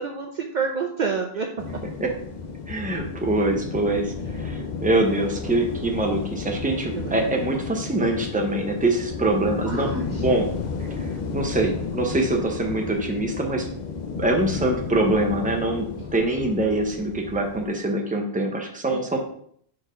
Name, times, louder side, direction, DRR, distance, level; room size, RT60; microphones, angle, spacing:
voice 1, 0.0-1.5 5.1-5.3 6.9-7.2 9.7-10.1 18.9-19.0, right 5 dB, 55° right, 2 dB, 0.6 m, -28 dB
sound 1, 1.6-17.7, left 4 dB, 45° left, 0.8 m, -33 dB
voice 2, 2.7-10.5 11.0-11.1 11.3-13.7 14.2-19.2, right 2 dB, 10° right, 2 dB, 0.7 m, -24 dB
4.4 x 4.3 x 5.0 m, 0.64 s
omnidirectional pair, 1.1 m